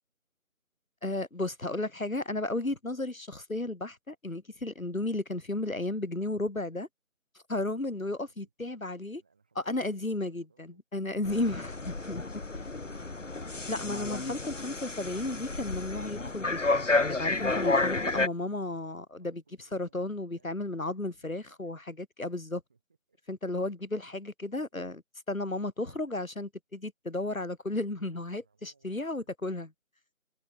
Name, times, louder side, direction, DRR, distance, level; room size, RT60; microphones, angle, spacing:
voice 1, 1.0-6.9 7.5-9.2 9.6-12.2 13.7-16.8 17.2-19.4 19.7-22.6 23.3-25.0 25.3-29.7, left 2 dB, 85° left, 2.3 m, -34 dB
voice 2, 7.5-8.5 8.9-10.8 19.2-21.8 22.3-22.8 23.1-23.6 25.8-26.2 28.0-29.3, right 5 dB, 5° right, 5.5 m, -69 dB
sound 1, 11.2-18.3, left 3 dB, 65° left, 1.2 m, -31 dB
figure-of-eight pair, 175°, 40 cm